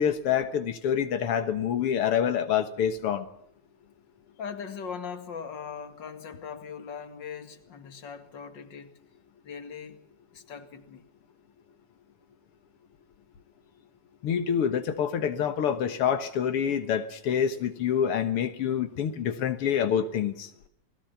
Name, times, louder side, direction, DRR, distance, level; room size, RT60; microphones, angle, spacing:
voice 1, 0.0-3.3 14.2-20.5, left 8 dB, 90° left, 2.3 m, -26 dB
voice 2, 4.4-9.0 9.4-10.0 10.3-11.1, left 6 dB, 55° left, 2.8 m, -40 dB
29.5 x 20.5 x 5.8 m
omnidirectional pair, 2.4 m